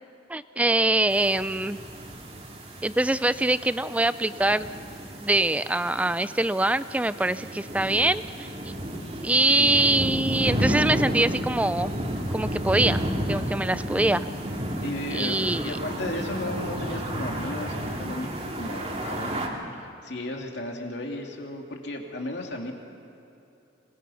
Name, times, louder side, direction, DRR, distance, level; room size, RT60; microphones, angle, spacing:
voice 1, 0.3-1.8 2.8-4.7 5.2-8.5 9.2-11.9 12.3-13.0 13.3-14.3 15.1-15.8, right 2 dB, 5° right, 14 dB, 0.4 m, -24 dB
sound 1, 1.1-19.5, equal, 35° right, 2.5 m, -32 dB
voice 2, 9.3-9.7 14.8-15.4 15.6-22.7, left 1 dB, 65° left, 1 dB, 2.7 m, -35 dB
26.0 x 21.0 x 5.8 m, 2.9 s
head